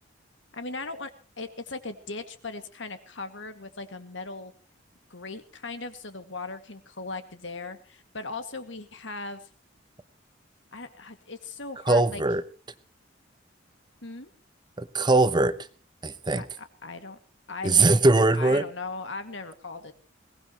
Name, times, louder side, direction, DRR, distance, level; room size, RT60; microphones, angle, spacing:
voice 1, 0.5-1.1 1.4-4.5 5.1-9.5 10.7-12.2 14.0-14.3 16.3-17.2 17.5-18.0 18.3-19.9, left 3 dB, 75° left, 9 dB, 2.0 m, -38 dB
voice 2, 11.9-12.4 14.8-15.6 16.0-16.4 17.6-18.7, right 2 dB, 25° right, 13 dB, 0.8 m, -21 dB
22.0 x 18.0 x 3.0 m, 0.36 s
head